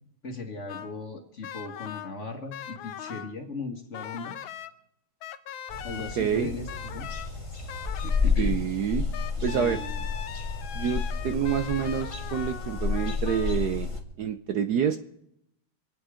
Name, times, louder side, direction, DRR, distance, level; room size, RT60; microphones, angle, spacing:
voice 1, 0.2-4.5 5.8-7.1 8.0-8.6 9.4-10.1, left 3 dB, 40° left, 3 dB, 1.9 m, -38 dB
sound 1, 0.7-1.0 1.4-2.1 2.5-3.3 3.9-4.7 5.2-6.3 6.7-7.3 7.7-8.3 9.1-13.9, left 10 dB, 80° left, 1.5 m, -40 dB
sound 2, 5.7-14.0, left 4 dB, 15° left, 1.5 m, -31 dB
voice 2, 6.2-6.5 8.4-9.0 9.4-9.8 10.7-13.9 14.2-15.0, right 8 dB, 65° right, 8 dB, 1.1 m, -27 dB
26.0 x 9.1 x 5.0 m, 0.75 s
omnidirectional pair, 2.2 m